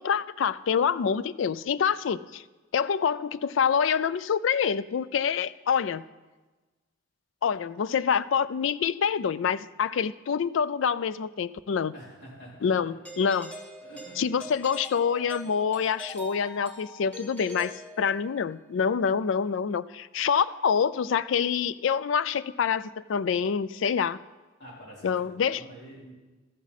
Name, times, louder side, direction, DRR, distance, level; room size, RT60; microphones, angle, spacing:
voice 1, 0.0-2.4 2.7-6.0 7.4-11.9 12.6-13.5 14.2-24.2 25.0-25.6, left 7 dB, 75° left, 17 dB, 0.4 m, -26 dB
voice 2, 11.9-13.0 13.8-14.5 24.6-26.1, equal, 60° left, -5 dB, 4.1 m, -47 dB
Doorbell, 13.0-18.5, equal, 10° left, 2.4 m, -43 dB
13.5 x 11.0 x 4.1 m, 1.2 s
head